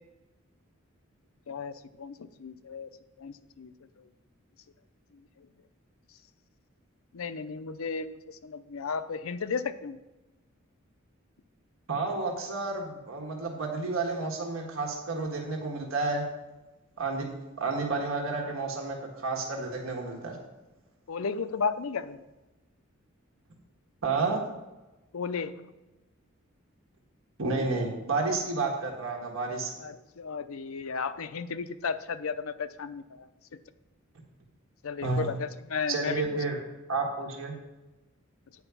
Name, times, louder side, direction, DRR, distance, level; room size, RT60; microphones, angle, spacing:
voice 1, 1.5-2.9 3.2-4.1 5.1-5.5 7.1-10.0 21.1-22.2 25.1-25.7 29.8-33.3 34.8-36.2, left 5 dB, 80° left, 12 dB, 0.5 m, -34 dB
voice 2, 11.9-16.3 17.0-17.3 17.6-20.4 24.0-24.4 27.4-29.7 35.0-35.3 35.9-36.6 36.9-37.6, right 3 dB, 75° right, 1 dB, 1.5 m, -31 dB
9.1 x 4.9 x 6.9 m, 1.1 s
head